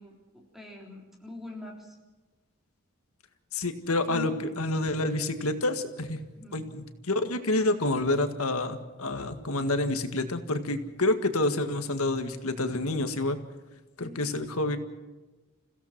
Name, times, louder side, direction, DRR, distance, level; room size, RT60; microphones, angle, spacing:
voice 1, 0.0-2.0 4.1-4.6 6.4-6.6 14.0-14.3, left 2 dB, ahead, -1 dB, 3.7 m, -44 dB
voice 2, 3.5-6.2 6.5-13.4 14.0-14.8, left 2 dB, 75° left, 8 dB, 1.8 m, -28 dB
28.5 x 16.5 x 6.0 m, 1.2 s
head